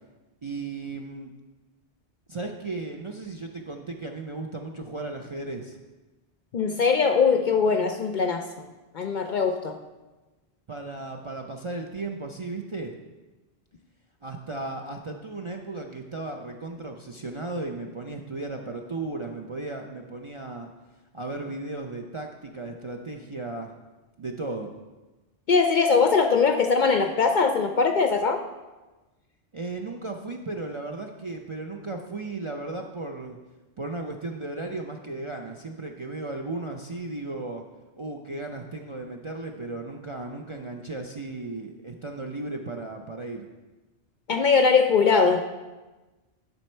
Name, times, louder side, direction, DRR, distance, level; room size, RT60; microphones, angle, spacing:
voice 1, 0.4-1.3 2.3-5.8 10.7-12.9 14.2-20.7 21.1-23.7 24.2-24.7 29.5-33.4 33.8-37.6 38.0-43.5, right 2 dB, 40° right, 2 dB, 0.4 m, -35 dB
voice 2, 6.5-8.4 8.9-9.8 25.5-28.4 44.3-45.4, left 5 dB, 55° left, 6 dB, 0.6 m, -21 dB
11.0 x 5.8 x 4.4 m, 1.2 s
omnidirectional pair, 1.2 m